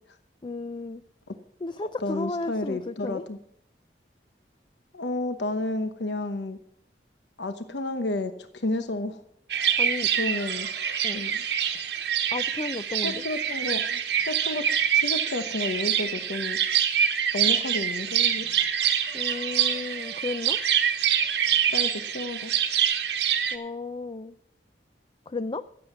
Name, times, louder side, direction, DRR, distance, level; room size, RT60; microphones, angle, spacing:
voice 1, 0.4-1.0 1.6-3.2 9.8-10.1 11.0-11.2 12.3-13.2 19.1-20.6 23.5-24.4 25.3-25.6, left 3 dB, 25° left, 12 dB, 0.4 m, -33 dB
voice 2, 2.0-3.4 4.9-6.6 7.4-9.2 10.2-10.7 11.1-11.4 13.0-14.6 14.9-16.6 17.3-18.5 21.7-22.5, left 2 dB, 85° left, 9 dB, 1.0 m, -31 dB
sound 1, 9.5-23.6, right 9 dB, 75° right, 1.3 m, -25 dB
15.5 x 7.9 x 5.9 m, 0.69 s
head